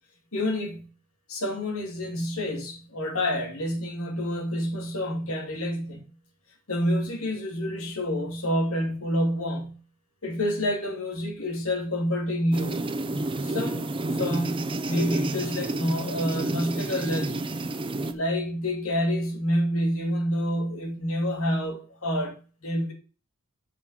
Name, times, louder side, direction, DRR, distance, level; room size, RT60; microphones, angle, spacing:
voice 1, 0.3-0.9 1.3-6.0 6.7-9.8 10.2-12.8 13.4-17.4 18.1-22.9, equal, 70° left, 2.5 m, -28 dB
sound 1, 12.5-18.1, right 2 dB, 25° right, 0.6 m, -30 dB
7.1 x 5.3 x 6.5 m
head